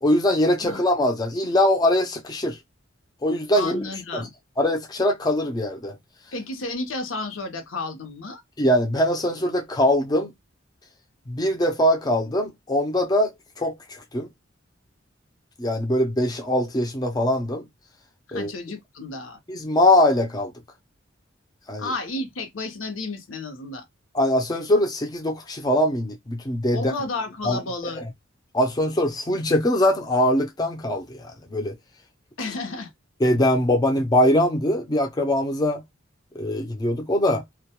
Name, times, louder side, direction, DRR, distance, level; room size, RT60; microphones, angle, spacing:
voice 1, 0.0-2.6 3.2-3.8 4.1-4.3 4.6-6.0 8.6-10.3 11.3-14.3 15.6-17.7 18.3-18.5 19.5-20.5 21.7-21.9 24.1-26.9 27.4-28.0 28.5-31.7 33.2-35.8 36.3-37.4, left 1 dB, 20° left, 0.4 m, -22 dB
voice 2, 3.6-4.3 6.3-8.4 18.3-19.4 21.8-23.8 26.7-28.0 32.4-32.9, left 2 dB, 85° left, 0.7 m, -32 dB
2.2 x 2.2 x 2.7 m
head